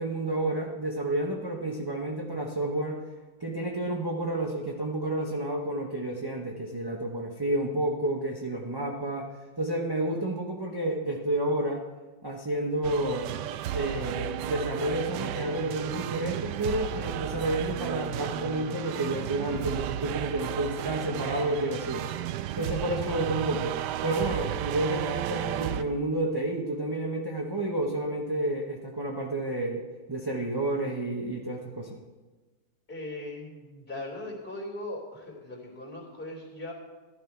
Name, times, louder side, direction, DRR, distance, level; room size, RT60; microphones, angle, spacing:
voice 1, 0.0-3.0 3.4-9.3 9.6-11.8 12.2-13.3 13.7-22.1 22.6-32.0, right 1 dB, 20° right, -1 dB, 0.7 m, -30 dB
sound 1, 12.8-25.8, right 11 dB, 75° right, 1.1 m, -33 dB
voice 2, 32.9-36.7, left 1 dB, 30° left, -1 dB, 3.3 m, -39 dB
15.0 x 11.5 x 4.6 m, 1.3 s
omnidirectional pair, 2.1 m